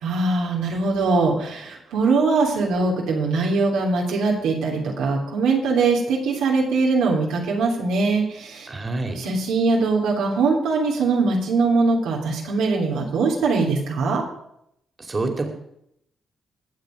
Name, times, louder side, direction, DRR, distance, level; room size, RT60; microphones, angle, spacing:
voice 1, 0.0-8.7 9.2-14.2, right 3 dB, 85° right, -2 dB, 3.1 m, -21 dB
voice 2, 8.7-9.3 15.0-15.4, right 2 dB, 35° right, 4 dB, 2.7 m, -27 dB
21.5 x 7.3 x 5.1 m, 0.75 s
supercardioid pair, 60°, 0 cm